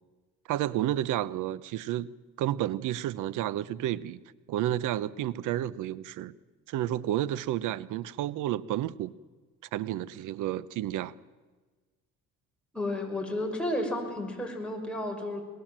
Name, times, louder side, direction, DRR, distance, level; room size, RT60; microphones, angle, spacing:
voice 1, 0.5-2.1 2.4-4.2 4.5-6.3 6.7-9.1 9.7-11.1, right 13 dB, 90° right, 0.8 m, -31 dB
voice 2, 12.7-15.4, left 1 dB, 5° left, 6.1 m, -32 dB
23.0 x 20.5 x 7.5 m
cardioid pair, 90°, 30 cm